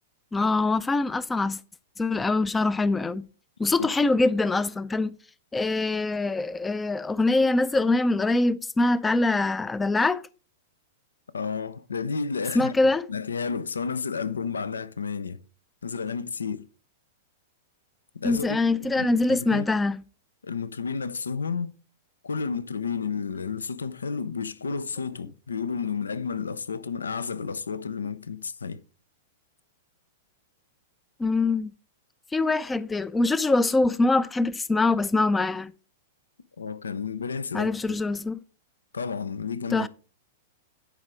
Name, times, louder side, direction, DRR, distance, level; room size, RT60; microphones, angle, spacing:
voice 1, 0.3-1.6 2.0-3.3 3.6-5.1 5.5-10.2 12.5-13.1 18.2-20.0 31.2-31.7 32.3-35.7 37.5-38.4 39.7-39.9, left 2 dB, 10° left, 0.4 m, -24 dB
voice 2, 11.3-12.7 13.1-15.4 15.8-16.7 18.1-19.7 20.4-21.8 22.2-28.8 36.6-37.7 38.9-39.9, left 5 dB, 80° left, 0.5 m, -31 dB
10.5 x 4.9 x 4.8 m
figure-of-eight pair, 105°, 0 cm